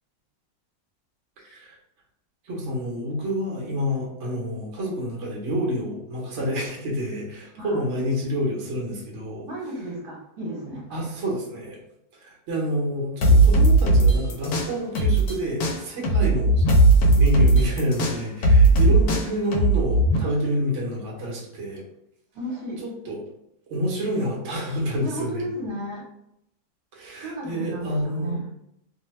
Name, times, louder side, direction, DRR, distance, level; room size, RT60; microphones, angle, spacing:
voice 1, 1.4-1.8 2.4-9.5 10.9-11.8 12.2-16.6 17.1-21.8 22.8-23.2 23.7-25.5 26.9-28.4, equal, 55° right, -3 dB, 1.0 m, -28 dB
voice 2, 9.5-10.9 18.8-19.0 22.3-22.8 25.0-26.0 27.2-28.4, right 1 dB, 70° right, -3 dB, 1.3 m, -33 dB
sound 1, 13.2-15.3 15.6-20.2, right 2 dB, 75° left, 1.0 m, -17 dB
2.7 x 2.1 x 3.0 m, 0.79 s
omnidirectional pair, 1.7 m